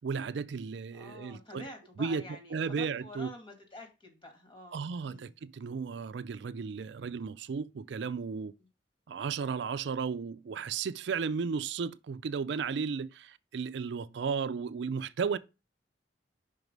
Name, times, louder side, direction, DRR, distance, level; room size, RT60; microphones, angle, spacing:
voice 1, 0.0-1.6 2.0-2.2 2.5-3.3 4.7-8.5 9.1-15.4, right 5 dB, 65° right, 0.4 m, -34 dB
voice 2, 0.9-5.3 8.6-8.7, left 1 dB, 25° left, 2.1 m, -48 dB
5.6 x 4.7 x 5.2 m
head